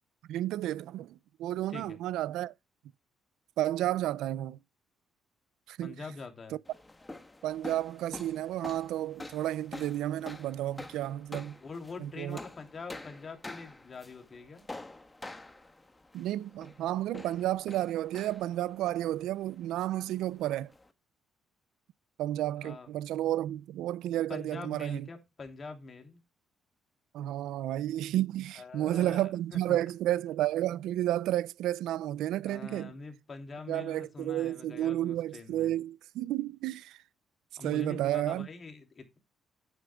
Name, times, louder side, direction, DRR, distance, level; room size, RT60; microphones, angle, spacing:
voice 1, 0.3-2.5 3.6-4.6 5.7-5.9 7.4-11.6 12.0-12.4 16.1-20.7 22.2-25.1 27.1-32.9 33.7-37.0 37.6-38.5, right 13 dB, 90° right, 0.4 m, -32 dB
voice 2, 5.8-6.6 11.6-14.6 22.6-22.9 24.3-26.2 28.5-29.8 32.4-35.7 37.6-39.2, left 4 dB, 40° left, 2.8 m, -44 dB
sound 1, 6.6-20.9, left 2 dB, 15° left, 1.2 m, -48 dB
11.0 x 9.3 x 2.2 m
cardioid pair, 90°, 0 cm